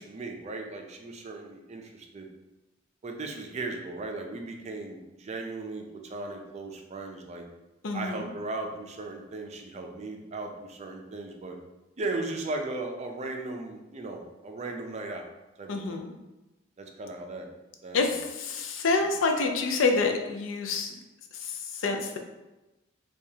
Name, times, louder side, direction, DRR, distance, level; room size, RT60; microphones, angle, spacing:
voice 1, 0.0-2.3 3.0-7.5 7.9-11.6 12.0-15.2 15.6-16.0 16.8-17.5 17.8-18.2 19.0-19.1, right 2 dB, 35° right, 3 dB, 0.4 m, -37 dB
voice 2, 7.8-8.3 15.7-16.1 17.9-21.0 21.3-22.2, left 3 dB, 75° left, 4 dB, 0.5 m, -27 dB
4.6 x 2.3 x 2.7 m, 1.0 s
head